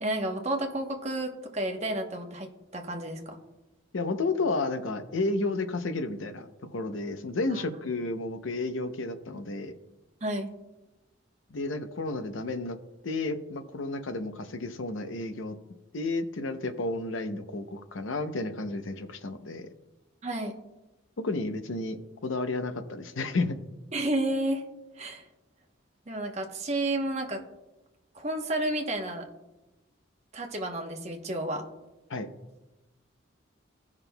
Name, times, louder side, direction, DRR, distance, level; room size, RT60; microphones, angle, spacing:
voice 1, 0.0-3.4 10.2-10.5 20.2-20.5 23.9-24.6 25.0-25.3 26.1-27.4 28.1-29.3 30.3-31.6, right 1 dB, 35° right, 2 dB, 1.0 m, -31 dB
voice 2, 3.9-6.5 6.7-9.7 11.5-12.8 13.0-15.6 15.9-19.7 21.2-23.6 32.1-32.3, left 2 dB, 75° left, 9 dB, 0.7 m, -32 dB
17.0 x 5.9 x 2.3 m, 1.0 s
head